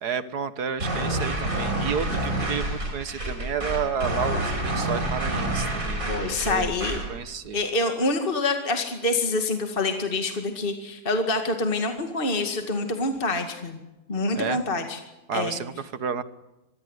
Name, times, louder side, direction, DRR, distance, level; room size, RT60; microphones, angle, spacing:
voice 1, 0.0-6.7 7.1-7.6 14.4-14.6 15.3-16.2, right 7 dB, 70° right, 13 dB, 1.8 m, -31 dB
sound 1, 0.8-7.1, right 1 dB, 50° right, 6.7 m, -28 dB
voice 2, 6.1-7.0 7.5-13.8 14.1-15.0 15.3-15.6, left 2 dB, 30° left, 5 dB, 2.3 m, -26 dB
25.0 x 21.5 x 8.1 m, 1.0 s
omnidirectional pair, 1.8 m